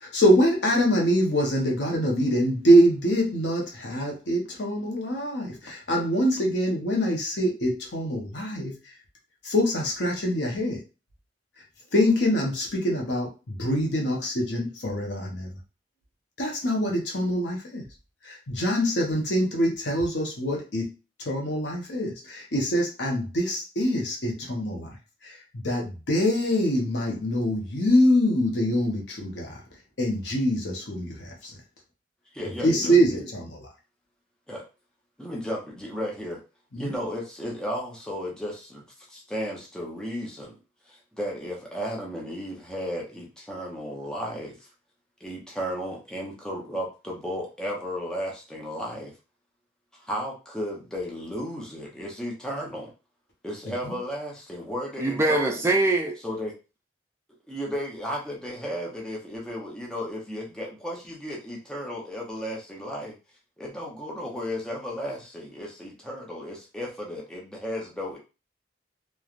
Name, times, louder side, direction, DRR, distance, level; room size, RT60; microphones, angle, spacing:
voice 1, 0.0-8.7 9.4-10.8 11.9-15.5 16.4-17.8 18.2-20.9 21.2-24.9 25.2-29.6 30.0-31.5 32.6-33.7 36.7-36.9 53.9-54.0, equal, 70° left, 0.9 m, -24 dB
voice 2, 32.3-33.0 34.5-34.6 35.2-36.4 36.8-40.6 40.9-44.7 45.2-49.1 49.9-52.9 53.4-55.6 56.2-56.5 57.5-63.2 63.6-68.2, equal, 5° left, 0.7 m, -34 dB
voice 3, 55.0-56.2, right 2 dB, 15° right, 0.3 m, -23 dB
3.1 x 2.3 x 2.4 m
head